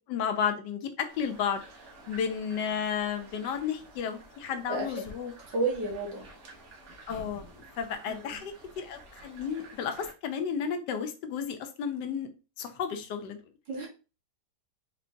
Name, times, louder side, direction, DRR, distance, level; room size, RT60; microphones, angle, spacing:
voice 1, 0.1-1.6 2.1-5.3 7.1-7.5 7.8-12.3 12.6-13.4, left 7 dB, 80° left, 7 dB, 1.3 m, -32 dB
sound 1, 1.1-10.1, right 1 dB, 50° right, 1.2 m, -51 dB
voice 2, 4.7-5.0 5.4-6.4 8.1-8.4 13.7-13.9, right 2 dB, 85° right, -1 dB, 2.1 m, -32 dB
4.4 x 3.7 x 2.6 m, 0.32 s
omnidirectional pair, 1.9 m